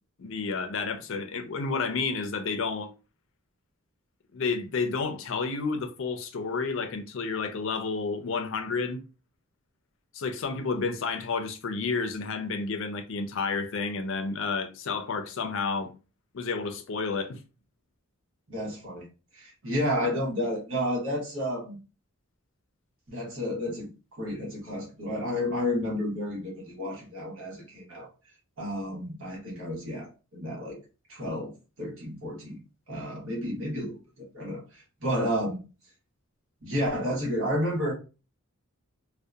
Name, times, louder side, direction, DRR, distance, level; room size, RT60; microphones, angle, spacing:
voice 1, 0.2-2.9 4.3-9.0 10.1-15.9 16.3-17.4, left 4 dB, 60° left, 0.4 m, -30 dB
voice 2, 18.5-19.1 19.3-21.8 23.1-23.9 24.2-28.1 28.6-30.8 31.1-31.5 31.8-32.6 32.9-34.0 34.3-35.6 36.6-37.9, equal, 65° right, 1.1 m, -31 dB
2.7 x 2.1 x 2.2 m
head